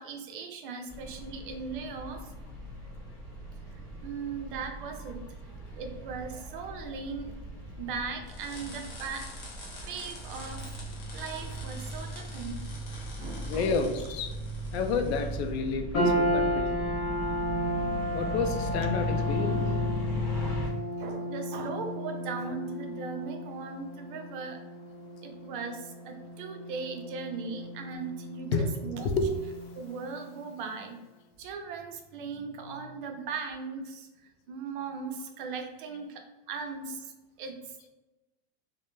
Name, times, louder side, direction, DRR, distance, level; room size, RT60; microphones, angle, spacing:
voice 1, 0.0-2.3 4.0-5.3 5.8-9.3 9.9-10.8 11.1-12.6 12.9-13.7 21.0-24.6 25.2-29.1 29.7-31.0 31.4-37.8, right 5 dB, 55° right, 4 dB, 0.5 m, -38 dB
sound 1, 0.9-20.7, left 1 dB, ahead, 0.8 m, -37 dB
sound 2, 8.3-15.5, left 2 dB, 45° left, 0.8 m, -47 dB
voice 2, 13.5-14.3 14.7-16.7 18.1-19.8 27.5-27.6 28.5-28.7 29.0-29.3, left 4 dB, 85° left, 6 dB, 0.5 m, -30 dB
sound 3, 15.9-30.4, equal, 25° left, 0.4 m, -34 dB
2.2 x 2.0 x 2.9 m, 1.0 s
supercardioid pair, 170°, 31 cm